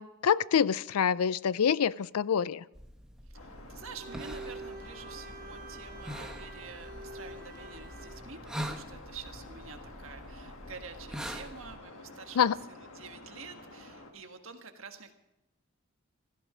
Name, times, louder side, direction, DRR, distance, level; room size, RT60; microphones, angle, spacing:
voice 1, 0.0-2.6 12.4-12.5, left 7 dB, 90° left, 20 dB, 0.4 m, -26 dB
sound 1, 2.7-11.8, equal, 5° right, 1.1 m, -44 dB
sound 2, 3.3-14.1, left 2 dB, 75° left, 1.8 m, -50 dB
voice 2, 3.3-15.1, right 5 dB, 70° right, 6 dB, 1.5 m, -48 dB
Bowed string instrument, 3.8-8.3, right 3 dB, 40° right, 1.5 m, -47 dB
16.5 x 13.5 x 5.0 m, 0.90 s
head